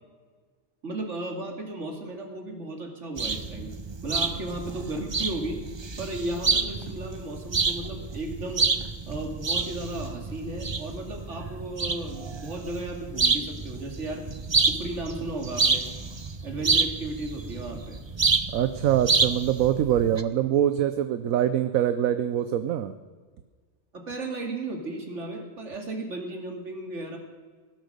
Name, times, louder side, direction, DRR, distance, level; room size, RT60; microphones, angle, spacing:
voice 1, 0.8-3.7 4.0-5.6 6.0-8.7 9.1-14.3 14.6-15.9 16.4-18.0 23.9-27.2, right 2 dB, 60° right, 3 dB, 2.7 m, -35 dB
sound 1, 3.2-20.2, right 4 dB, 30° right, 0.5 m, -28 dB
voice 2, 18.5-22.9, right 10 dB, 80° right, 11 dB, 1.1 m, -24 dB
18.0 x 12.0 x 6.6 m, 1.5 s
omnidirectional pair, 1.4 m